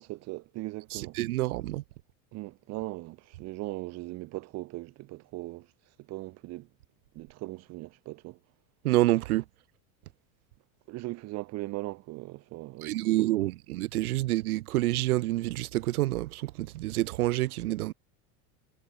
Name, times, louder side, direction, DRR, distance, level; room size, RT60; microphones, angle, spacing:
voice 1, 0.0-1.2 2.3-5.7 6.0-6.7 7.1-8.4 10.9-13.2, right 20 dB, 35° right, 7.4 m, -39 dB
voice 2, 0.9-1.8 8.8-9.4 12.8-17.9, right 17 dB, 90° right, 4.2 m, -28 dB
supercardioid pair, 175°, 43 cm